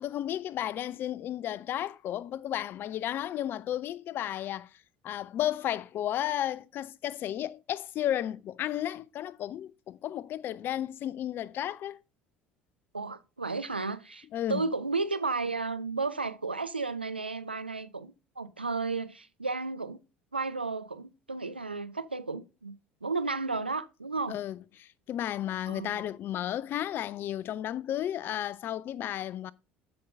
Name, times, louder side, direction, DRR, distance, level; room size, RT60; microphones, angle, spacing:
voice 1, 0.0-4.7 5.0-12.0 14.3-14.6 24.3-29.5, left 11 dB, 40° left, 0.4 m, -33 dB
voice 2, 12.9-20.0 20.3-24.4 25.7-26.0, right 3 dB, 85° right, 0.5 m, -33 dB
13.0 x 5.2 x 2.5 m
figure-of-eight pair, 65°, 5 cm